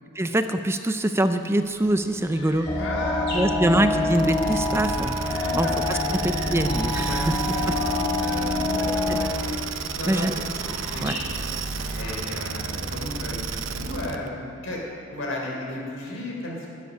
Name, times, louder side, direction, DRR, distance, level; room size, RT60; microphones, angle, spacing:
voice 1, 0.2-2.7 3.3-5.2 5.5-6.0 6.2-7.4 7.7-7.8 10.1-10.4 11.0-11.2, right 1 dB, 15° right, 8 dB, 0.5 m, -24 dB
sound 1, 1.4-12.9, left 1 dB, 55° left, 3.8 m, -41 dB
voice 2, 2.7-4.0 5.4-6.5 7.0-7.3 7.5-7.7 8.2-9.5 10.0-10.3 10.9-11.3 11.8-14.8 15.1-16.7, left 1 dB, 85° left, -1 dB, 3.7 m, -34 dB
sound 2, 2.7-9.3, left 2 dB, 20° left, 1.6 m, -26 dB
sound 3, 4.1-14.3, right 5 dB, 75° right, 0.8 m, -32 dB
12.5 x 8.3 x 9.6 m, 2.9 s
head